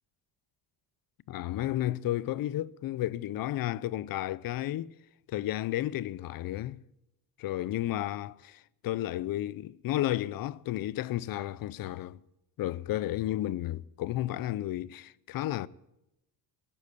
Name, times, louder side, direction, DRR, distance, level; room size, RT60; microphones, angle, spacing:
voice 1, 1.3-4.9 5.3-6.8 7.4-12.2 12.6-15.7, left 14 dB, 55° left, 0.5 m, -32 dB
15.0 x 11.0 x 8.3 m
cardioid pair, 170°, 43 cm